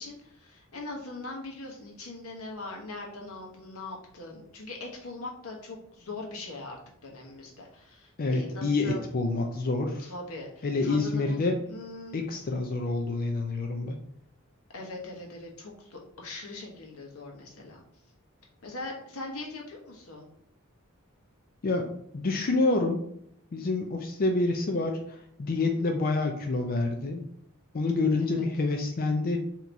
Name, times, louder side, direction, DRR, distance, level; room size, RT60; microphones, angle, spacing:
voice 1, 0.0-9.0 10.0-12.2 14.7-17.8 18.6-20.3 25.6-25.9 28.2-28.4, left 2 dB, 85° left, 0 dB, 1.2 m, -41 dB
voice 2, 8.2-10.1 10.6-11.6 12.1-14.0 21.6-21.9 22.1-23.0 23.5-27.2 27.7-29.4, left 3 dB, 45° left, 4 dB, 0.4 m, -27 dB
3.9 x 2.9 x 4.5 m, 0.71 s
head